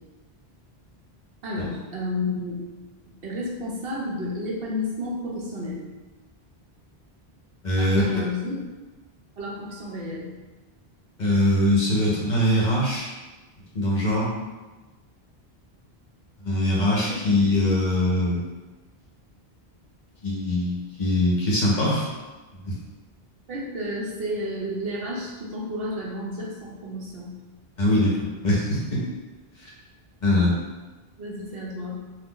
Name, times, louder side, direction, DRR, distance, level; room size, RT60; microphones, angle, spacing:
voice 1, 1.4-2.6 3.2-5.8 7.8-8.6 9.4-10.3 16.9-17.1 23.5-27.3 31.2-32.0, left 1 dB, 65° right, -4 dB, 0.9 m, -31 dB
voice 2, 7.6-8.2 11.2-13.1 13.7-14.3 16.4-18.4 20.2-22.1 22.6-22.7 27.8-29.0 29.6-29.7 30.2-30.5, left 1 dB, 50° left, -5 dB, 0.8 m, -22 dB
2.5 x 2.4 x 3.6 m, 1.2 s
omnidirectional pair, 1.1 m